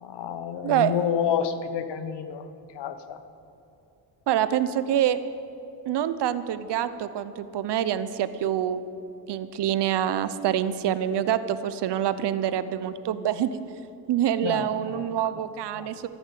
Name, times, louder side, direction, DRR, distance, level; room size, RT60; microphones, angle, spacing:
voice 1, 0.0-3.2 14.4-15.1 15.8-15.9, left 8 dB, 70° left, 11 dB, 1.0 m, -29 dB
voice 2, 4.3-5.2 5.9-8.8 9.3-13.6 14.1-16.1, right 10 dB, 70° right, 13 dB, 0.8 m, -26 dB
14.0 x 9.4 x 8.6 m, 2.6 s
cardioid pair, 135°, 43 cm